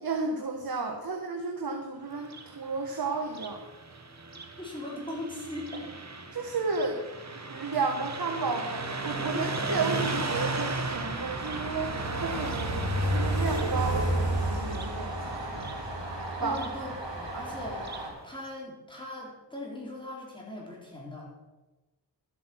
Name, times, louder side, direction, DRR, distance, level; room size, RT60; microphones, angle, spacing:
voice 1, 0.0-3.6 6.3-7.0 7.3-15.1 15.5-15.7 16.4-16.6, right 4 dB, 55° right, 3 dB, 1.3 m, -32 dB
Car passing by, 2.1-18.1, right 3 dB, 40° right, 1.4 m, -36 dB
voice 2, 4.6-6.0 9.3-9.5 16.4-17.9 18.2-21.3, left 1 dB, 10° left, -4 dB, 4.3 m, -39 dB
Train, 10.2-18.1, right 1 dB, 80° right, 3.5 m, -32 dB
13.0 x 8.3 x 6.3 m, 1.1 s
wide cardioid pair, 70°, 43 cm